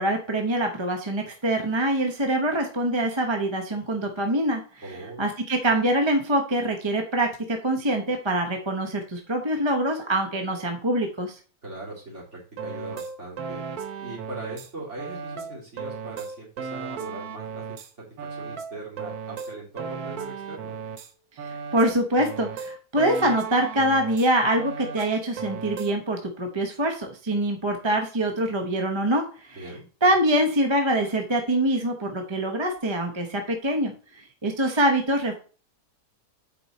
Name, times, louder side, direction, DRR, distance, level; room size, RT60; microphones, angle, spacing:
voice 1, 0.0-11.4 21.4-29.7 30.0-35.4, right 1 dB, 20° right, 3 dB, 0.9 m, -25 dB
voice 2, 4.8-5.2 11.6-13.6 14.0-17.8 18.4-20.8 29.6-29.8, right 2 dB, 50° right, -4 dB, 3.6 m, -40 dB
sound 1, 12.6-14.7 15.0-17.9 18.2-21.1 21.4-24.3 24.6-25.9, right 5 dB, 80° right, 1.4 m, -35 dB
8.6 x 4.9 x 4.2 m, 0.38 s
omnidirectional pair, 1.6 m